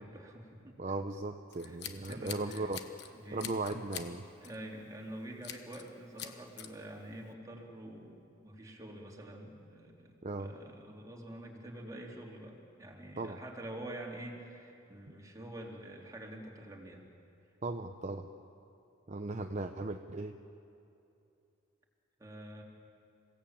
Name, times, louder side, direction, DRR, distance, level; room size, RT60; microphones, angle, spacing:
voice 1, 0.0-0.8 1.6-2.7 3.1-3.5 4.4-17.0 22.2-22.6, right 1 dB, 15° right, -1 dB, 3.1 m, -47 dB
voice 2, 0.8-2.8 3.3-4.2 10.2-10.5 13.2-13.4 17.6-18.3 19.1-20.4, right 2 dB, 35° right, 5 dB, 0.8 m, -37 dB
Scissors, 1.5-3.1 3.4-4.1 4.4-4.7 5.4-5.9 6.2-6.7, left 9 dB, 55° left, 1.3 m, -44 dB
28.0 x 17.0 x 8.8 m, 2.7 s
head